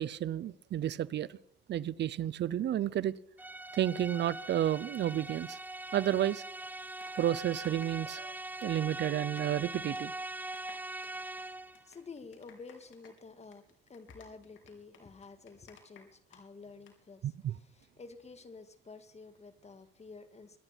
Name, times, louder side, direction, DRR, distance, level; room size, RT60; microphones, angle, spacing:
voice 1, 0.0-1.4 1.7-3.1 3.7-5.6 5.9-6.4 7.2-8.3 8.6-10.1 17.2-17.5, right 11 dB, 60° right, 0.6 m, -31 dB
sound 1, 3.4-11.8, right 2 dB, 10° right, 0.5 m, -42 dB
sound 2, 6.7-9.6 9.9-10.1 10.4-16.4 16.7-16.9, left 6 dB, 75° left, 3.8 m, -58 dB
voice 2, 11.4-20.6, left 4 dB, 35° left, 2.0 m, -51 dB
24.0 x 10.0 x 5.9 m
cardioid pair, 90°, 20 cm